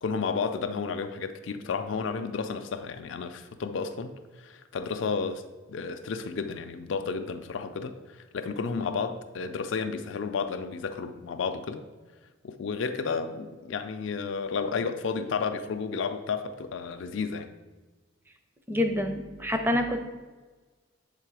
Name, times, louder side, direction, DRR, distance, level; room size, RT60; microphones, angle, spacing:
voice 1, 0.0-5.4 5.7-11.8 12.4-17.5, left 5 dB, 65° left, 8 dB, 0.4 m, -32 dB
voice 2, 18.7-20.0, left 1 dB, 10° right, 6 dB, 0.5 m, -27 dB
7.3 x 3.8 x 4.7 m, 1.3 s
head